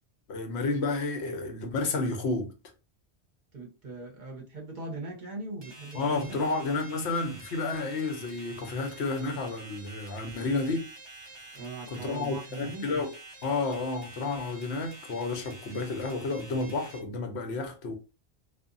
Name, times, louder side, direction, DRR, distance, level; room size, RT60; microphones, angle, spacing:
voice 1, 0.3-2.5 5.9-10.9 11.9-13.1 13.4-18.0, left 3 dB, 80° left, 1.0 m, -31 dB
voice 2, 3.5-6.4 11.5-12.9, right 2 dB, 50° right, 0.8 m, -40 dB
sound 1, 5.6-17.0, right 2 dB, 25° right, 0.9 m, -48 dB
2.8 x 2.3 x 2.5 m
omnidirectional pair, 1.1 m